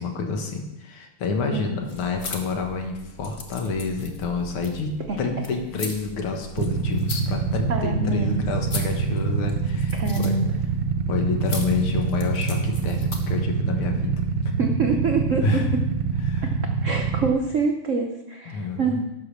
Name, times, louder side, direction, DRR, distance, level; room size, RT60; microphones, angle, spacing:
voice 1, 0.0-4.9 5.2-10.4 11.1-14.5 15.3-15.7 16.3-16.5 18.5-19.0, left 4 dB, 75° left, 4 dB, 2.1 m, -29 dB
voice 2, 1.4-1.8 5.1-5.2 7.7-8.4 9.9-10.5 14.6-15.7 16.8-19.0, right 4 dB, 85° right, 3 dB, 0.6 m, -25 dB
sound 1, 1.8-13.4, left 2 dB, 40° left, 0.8 m, -40 dB
Motorcycle / Idling, 6.6-17.3, right 5 dB, 70° right, 1.4 m, -25 dB
11.5 x 5.2 x 6.4 m, 0.95 s
omnidirectional pair, 2.4 m